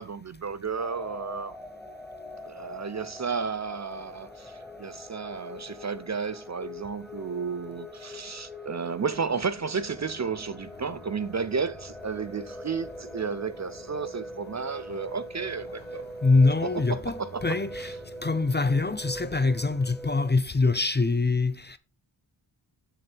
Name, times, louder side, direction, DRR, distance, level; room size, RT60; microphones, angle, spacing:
voice 1, 0.0-1.5 2.4-16.0 16.6-17.4 17.8-17.9, right 5 dB, 40° right, 0.5 m, -33 dB
sound 1, 0.8-20.3, left 1 dB, ahead, 1.4 m, -42 dB
sound 2, 9.8-19.9, left 2 dB, 75° left, 1.6 m, -51 dB
voice 2, 16.2-17.9 18.2-21.8, left 3 dB, 25° left, 0.5 m, -24 dB
7.1 x 7.1 x 3.4 m
wide cardioid pair, 95°, 46 cm